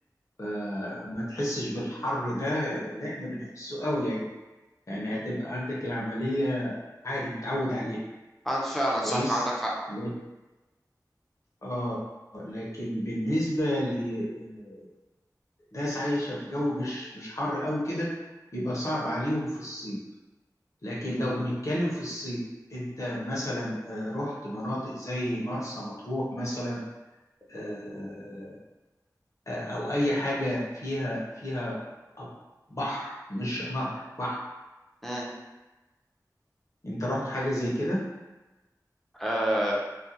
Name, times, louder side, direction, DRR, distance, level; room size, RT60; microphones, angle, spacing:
voice 1, 0.4-4.3 4.9-8.0 9.0-9.4 9.9-10.1 11.6-12.0 12.3-14.9 15.7-18.1 18.5-20.0 20.8-22.4 22.7-26.8 27.5-28.6 29.5-31.8 32.2-32.3 32.7-34.4 36.8-38.1, equal, 45° left, -6 dB, 0.7 m, -31 dB
voice 2, 8.4-9.7 35.0-35.3 39.2-39.7, equal, 5° left, -4 dB, 0.6 m, -27 dB
2.4 x 2.2 x 2.8 m, 1.1 s
wide cardioid pair, 45°, 7 cm